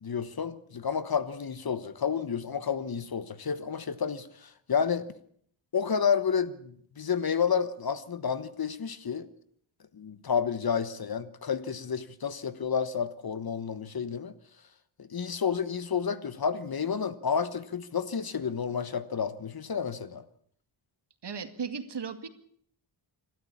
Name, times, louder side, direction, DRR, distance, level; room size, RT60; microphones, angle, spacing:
voice 1, 0.0-5.1 5.7-9.3 9.9-14.3 15.0-20.2, left 6 dB, 50° left, 1.3 m, -30 dB
voice 2, 21.2-22.3, right 6 dB, 55° right, 2.2 m, -36 dB
26.5 x 13.0 x 8.6 m
wide cardioid pair, 130°, 48 cm